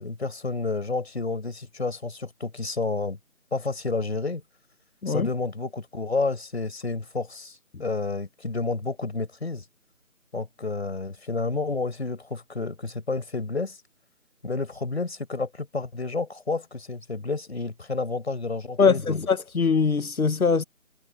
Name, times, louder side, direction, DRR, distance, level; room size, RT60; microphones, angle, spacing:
voice 1, 0.0-3.2 3.5-4.4 5.1-9.6 10.3-13.8 14.4-19.2, left 3 dB, 50° left, 6.0 m, -30 dB
voice 2, 18.8-20.6, left 5 dB, 90° left, 1.3 m, -22 dB
figure-of-eight pair, 170°, 42 cm